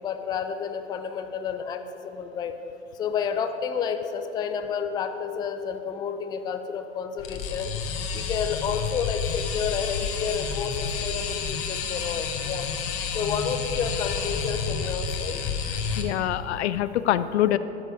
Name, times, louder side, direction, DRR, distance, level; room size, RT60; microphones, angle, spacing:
voice 1, 0.0-2.5 2.9-7.7 8.1-12.7 13.1-15.4, left 7 dB, 10° left, 7 dB, 0.4 m, -30 dB
sound 1, 7.2-16.0, left 6 dB, 40° left, 1.3 m, -30 dB
voice 2, 16.0-17.6, left 13 dB, 65° left, 14 dB, 0.5 m, -24 dB
13.5 x 6.4 x 5.0 m, 3.0 s
hypercardioid pair, 100°, 36 cm